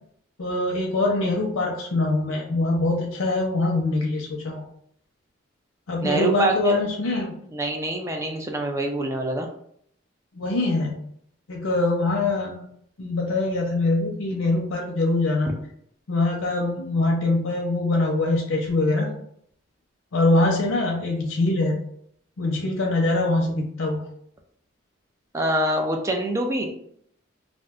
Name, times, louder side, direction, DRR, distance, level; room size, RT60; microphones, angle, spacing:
voice 1, 0.4-4.6 5.9-7.3 10.3-11.0 11.5-12.6 13.0-15.5 16.1-19.1 20.1-21.8 22.4-24.1, left 2 dB, 90° left, -1 dB, 0.5 m, -23 dB
voice 2, 6.0-6.8 7.5-9.5 25.3-26.7, right 1 dB, 15° right, 2 dB, 0.3 m, -25 dB
2.4 x 2.2 x 3.6 m, 0.67 s
head